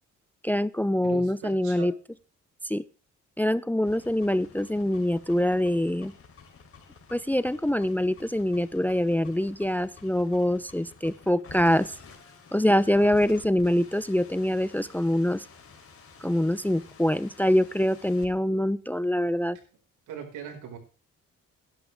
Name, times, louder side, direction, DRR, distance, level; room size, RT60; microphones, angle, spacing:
voice 1, 0.4-1.9 2.6-2.8 3.4-6.1 7.1-11.9 12.5-15.5 16.2-19.6, left 1 dB, 5° left, 17 dB, 0.5 m, -24 dB
voice 2, 1.0-1.9 20.1-20.8, right 7 dB, 85° right, 3 dB, 5.0 m, -40 dB
sound 1, 3.8-18.3, left 5 dB, 45° left, 3.6 m, -51 dB
17.5 x 11.5 x 3.5 m, 0.33 s
cardioid pair, 90°, 30 cm